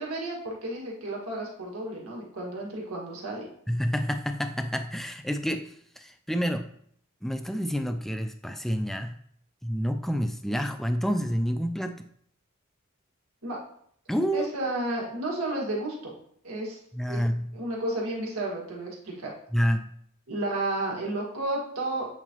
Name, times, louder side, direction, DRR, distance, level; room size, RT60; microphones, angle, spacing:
voice 1, 0.0-3.5 13.4-13.6 14.3-16.1 16.4-16.8 17.1-17.2 17.5-19.3 20.3-22.1, right 1 dB, 90° right, -2 dB, 1.7 m, -32 dB
voice 2, 3.7-6.7 7.2-9.2 9.6-12.1 14.1-14.5 16.9-17.5 19.5-19.9, equal, ahead, 7 dB, 0.3 m, -28 dB
7.9 x 4.0 x 3.0 m, 0.66 s
head